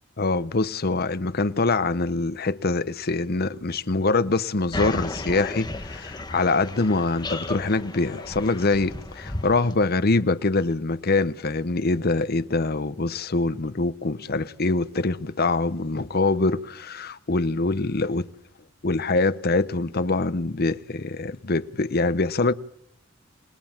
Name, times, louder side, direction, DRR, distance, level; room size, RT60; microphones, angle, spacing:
voice 1, 0.2-18.3 18.8-22.5, left 3 dB, 45° left, 0.8 m, -24 dB
sound 1, 4.7-9.7, left 2 dB, 20° left, 1.6 m, -34 dB
28.5 x 18.5 x 7.3 m
head